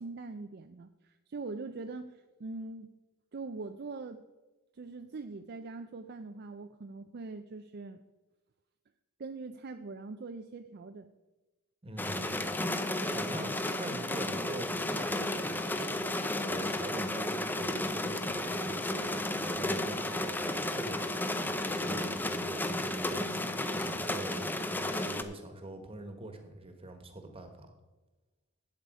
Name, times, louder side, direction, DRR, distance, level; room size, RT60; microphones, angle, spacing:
voice 1, 0.0-2.9 3.3-4.2 4.7-8.0 9.2-11.1, right 3 dB, 45° right, 8 dB, 0.4 m, -42 dB
voice 2, 11.8-12.6 13.1-27.7, right 1 dB, 25° right, 6 dB, 1.4 m, -44 dB
sound 1, 12.0-25.2, left 1 dB, 10° left, 0.5 m, -33 dB
11.5 x 8.4 x 4.8 m, 1.1 s
head